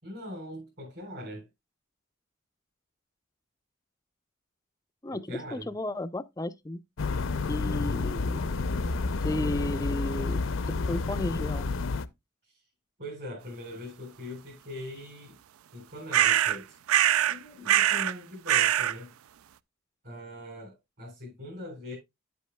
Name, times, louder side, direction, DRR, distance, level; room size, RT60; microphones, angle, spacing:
voice 1, 0.0-1.5 5.1-5.7 12.5-12.6 13.0-15.4 15.7-16.7 17.2-19.1 20.0-22.0, left 1 dB, 50° right, 4.0 m, -41 dB
voice 2, 5.0-6.8 7.5-8.4 9.2-10.4 10.7-11.7, left 1 dB, 15° left, 0.4 m, -34 dB
sound 1, 7.0-12.1, left 3 dB, 65° left, 0.5 m, -30 dB
sound 2, 16.1-16.6 16.9-17.4 17.7-18.1 18.5-18.9, right 12 dB, 85° right, 0.4 m, -23 dB
10.0 x 8.3 x 2.2 m
head